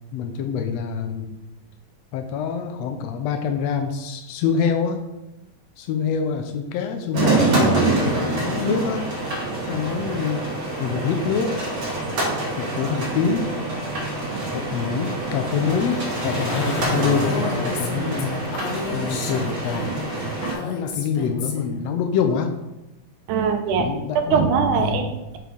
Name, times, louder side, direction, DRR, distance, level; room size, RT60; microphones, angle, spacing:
voice 1, 0.1-1.4 2.1-5.0 5.8-9.1 9.7-10.4 10.8-11.5 12.6-13.5 14.5-18.4 18.9-19.8 20.6-22.6 23.8-24.4 24.8-25.1, left 6 dB, 90° left, 5 dB, 1.4 m, -25 dB
sound 1, 7.1-20.5, right 3 dB, 45° right, 2.1 m, -26 dB
sound 2, 10.0-19.2, equal, 35° left, 1.3 m, -34 dB
Female speech woman speaking, 17.1-21.8, left 4 dB, 70° left, 2.0 m, -32 dB
voice 2, 23.3-23.9 24.2-25.4, right 6 dB, 80° right, 5 dB, 2.2 m, -21 dB
6.6 x 4.5 x 5.3 m, 0.95 s
omnidirectional pair, 3.8 m